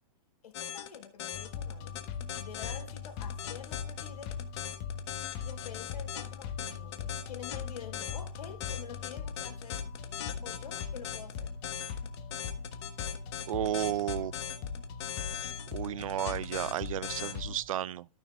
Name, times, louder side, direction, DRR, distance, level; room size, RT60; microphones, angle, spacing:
voice 1, 0.4-2.0 2.4-4.4 5.4-9.9 10.4-11.5, left 7 dB, 80° left, 4.0 m, -47 dB
sound 1, 0.5-17.3, left 10 dB, 45° left, 1.5 m, -40 dB
sound 2, 1.3-17.6, left 6 dB, 25° left, 1.2 m, -40 dB
voice 2, 13.5-14.3 15.7-18.1, right 12 dB, 60° right, 0.5 m, -33 dB
13.0 x 6.6 x 3.5 m
hypercardioid pair, 170°, 19 cm